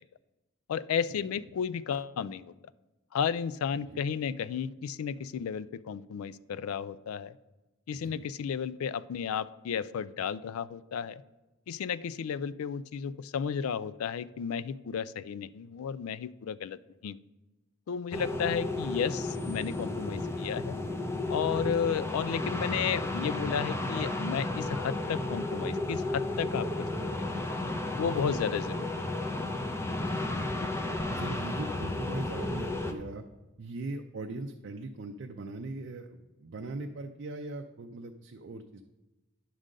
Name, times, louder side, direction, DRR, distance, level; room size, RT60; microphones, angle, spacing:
voice 1, 0.7-2.5 3.1-7.4 7.9-11.2 11.7-17.2 17.9-20.8 21.3-26.9 27.2-27.3 27.9-28.8, left 7 dB, 85° left, 18 dB, 0.3 m, -33 dB
voice 2, 7.9-8.3 21.8-21.9 28.2-28.4 30.0-30.7 31.1-33.2 33.6-38.8, right 2 dB, 55° right, 4 dB, 0.4 m, -40 dB
sound 1, 18.1-32.9, left 2 dB, 10° left, 0.5 m, -33 dB
10.0 x 3.8 x 6.4 m, 1.1 s
head